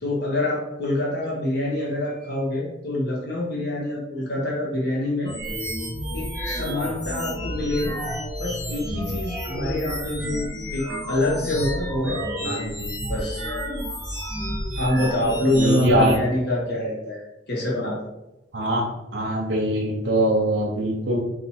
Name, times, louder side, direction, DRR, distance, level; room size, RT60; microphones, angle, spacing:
voice 1, 0.0-5.3 6.1-8.0 8.4-12.7 13.1-13.4 14.8-18.0, left 1 dB, 60° left, -4 dB, 0.9 m, -26 dB
sound 1, 5.2-16.2, equal, 20° left, 1.3 m, -30 dB
voice 2, 15.6-16.2 18.5-18.8 19.1-21.2, right 1 dB, 70° right, -1 dB, 0.7 m, -22 dB
4.2 x 2.5 x 4.2 m, 0.92 s
head